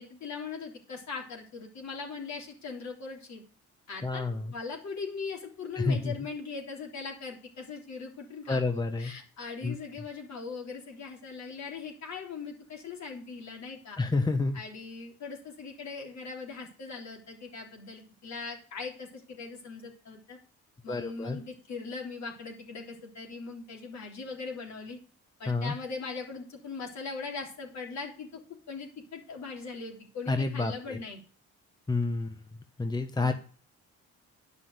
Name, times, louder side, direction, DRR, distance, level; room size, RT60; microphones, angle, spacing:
voice 1, 0.0-3.4 3.9-4.2 4.5-14.0 14.5-20.4 20.8-25.0 25.4-28.4 28.7-31.2 33.2-33.3, left 4 dB, 65° left, 0 dB, 3.7 m, -40 dB
voice 2, 4.0-4.5 5.7-6.1 8.5-9.1 9.6-9.8 14.0-14.6 20.9-21.4 25.5-25.7 30.3-31.0 31.9-32.3 32.8-33.3, left 3 dB, 15° left, 7 dB, 1.1 m, -29 dB
10.0 x 5.7 x 7.9 m, 0.40 s
cardioid pair, 90°, 30 cm